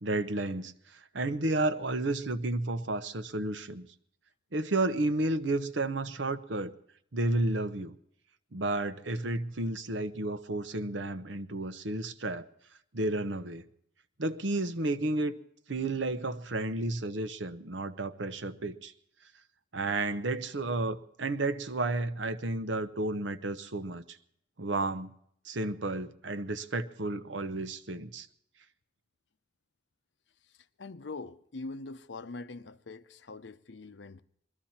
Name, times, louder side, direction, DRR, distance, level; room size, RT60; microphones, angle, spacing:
voice 1, 0.0-3.9 4.5-6.7 7.1-7.9 8.5-12.5 12.9-13.6 14.2-15.3 15.7-18.9 19.7-24.0 24.6-25.1 25.4-28.3, right 2 dB, 85° right, 1.0 m, -32 dB
voice 2, 30.8-34.2, left 3 dB, 75° left, 0.7 m, -43 dB
21.0 x 14.0 x 4.3 m
head